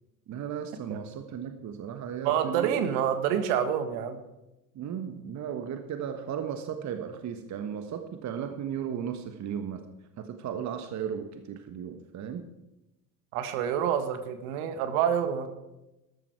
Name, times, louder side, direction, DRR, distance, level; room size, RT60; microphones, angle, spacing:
voice 1, 0.3-2.7 4.7-9.8 10.2-12.5, right 8 dB, 35° right, 7 dB, 1.3 m, -35 dB
voice 2, 2.2-4.2 13.3-15.5, right 9 dB, 60° right, 9 dB, 1.8 m, -27 dB
13.5 x 12.0 x 4.8 m, 0.95 s
hypercardioid pair, 75°, 47 cm